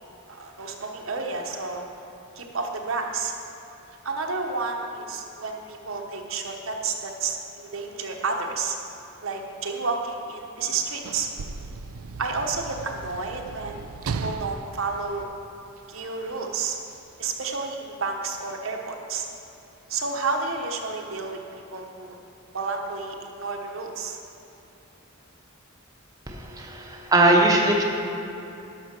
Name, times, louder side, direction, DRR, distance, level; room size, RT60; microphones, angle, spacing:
voice 1, 0.3-1.8 2.4-3.3 4.0-8.8 9.2-11.3 12.2-15.3 15.9-16.8 17.2-19.3 19.9-21.4 21.7-22.1 22.5-24.2, right 4 dB, 65° right, 2 dB, 1.0 m, -30 dB
Sliding door / Slam, 10.6-16.0 16.9-17.0, right 4 dB, 85° right, 0.4 m, -36 dB
voice 2, 26.3-27.8, right 2 dB, 15° right, -1 dB, 0.9 m, -20 dB
11.5 x 6.5 x 6.0 m, 2.9 s
head